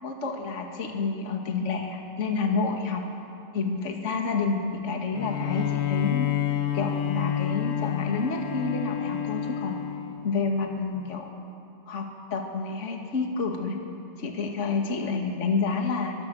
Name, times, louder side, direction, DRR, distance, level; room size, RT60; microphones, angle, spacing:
voice 1, 0.0-3.0 3.5-6.3 6.7-9.7 10.2-11.3 11.9-13.8 14.2-16.1, left 4 dB, 25° left, 2 dB, 1.7 m, -29 dB
Bowed string instrument, 5.1-10.6, left 11 dB, 90° left, 3.0 m, -29 dB
24.0 x 22.5 x 6.4 m, 2.6 s
omnidirectional pair, 4.0 m